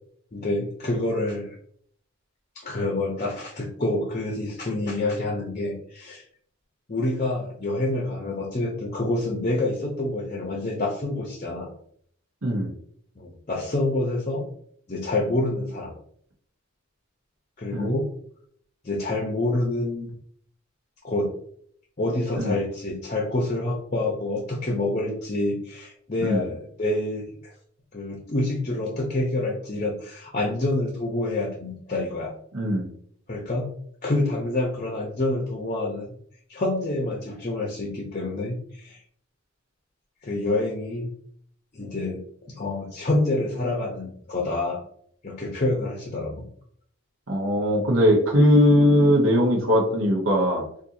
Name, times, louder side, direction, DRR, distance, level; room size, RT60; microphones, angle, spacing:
voice 1, 0.3-1.5 2.5-6.2 6.9-11.7 13.2-14.5 14.9-15.9 17.6-18.1 18.8-20.1 21.0-21.3 22.0-27.5 27.9-32.3 33.3-33.7 34.0-36.1 36.5-39.0 40.2-41.1 41.7-42.2 42.6-44.8 45.2-46.4, left 2 dB, 35° left, 0 dB, 0.7 m, -27 dB
voice 2, 12.4-12.7 17.7-18.0 22.3-22.6 26.2-26.5 32.5-32.9 47.3-50.6, equal, 65° right, -3 dB, 1.0 m, -20 dB
4.3 x 2.6 x 2.6 m, 0.63 s
head